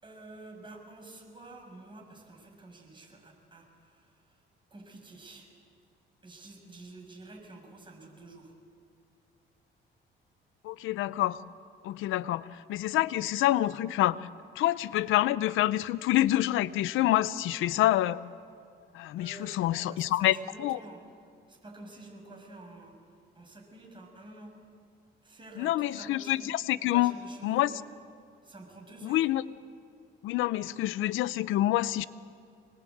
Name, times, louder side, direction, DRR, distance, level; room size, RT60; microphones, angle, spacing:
voice 1, 0.0-4.4 4.7-5.5 6.2-8.5 19.2-21.0 21.5-24.5 25.2-27.7 28.4-29.3, right 2 dB, 25° right, 1 dB, 6.6 m, -49 dB
voice 2, 10.6-11.4 11.8-14.3 14.6-18.2 18.9-20.8 25.6-27.1 27.4-27.7 29.0-29.4 30.2-32.0, left 14 dB, 90° left, 16 dB, 0.7 m, -27 dB
25.5 x 20.0 x 8.6 m, 2.3 s
cardioid pair, 90°, 20 cm